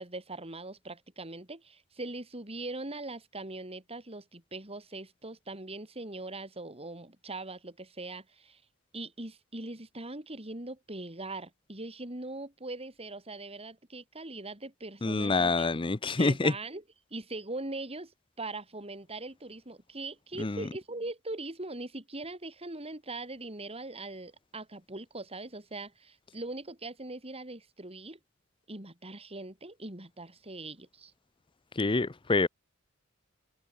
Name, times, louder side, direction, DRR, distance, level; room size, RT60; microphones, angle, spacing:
voice 1, 0.0-8.6 8.9-15.7 16.2-16.8 17.1-18.1 18.4-28.2 28.7-31.1, right 2 dB, 30° right, 5.1 m, -41 dB
voice 2, 15.0-16.5 20.4-20.6 31.8-32.5, left 3 dB, 25° left, 0.6 m, -26 dB
head